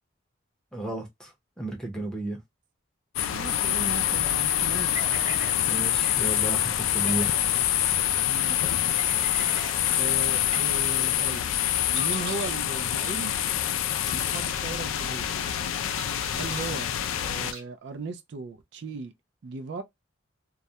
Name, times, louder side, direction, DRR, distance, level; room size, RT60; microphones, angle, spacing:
voice 1, 0.7-1.3 1.6-2.4 5.7-7.3, right 2 dB, 5° left, 0.6 m, -33 dB
sound 1, 3.2-17.5, left 11 dB, 90° left, 0.3 m, -26 dB
voice 2, 3.3-5.2 8.3-8.7 10.0-11.5 11.9-13.3 14.0-15.3 16.3-19.1 19.4-19.8, right 3 dB, 60° right, 0.3 m, -37 dB
sound 2, 4.9-5.6 6.0-6.1 7.0-7.4 9.0-9.8 10.5-10.6 11.9-12.6 13.0-13.1 14.0-14.4 16.0-16.7 17.5-17.6, right 2 dB, 90° right, 0.9 m, -39 dB
2.3 x 2.1 x 2.7 m
head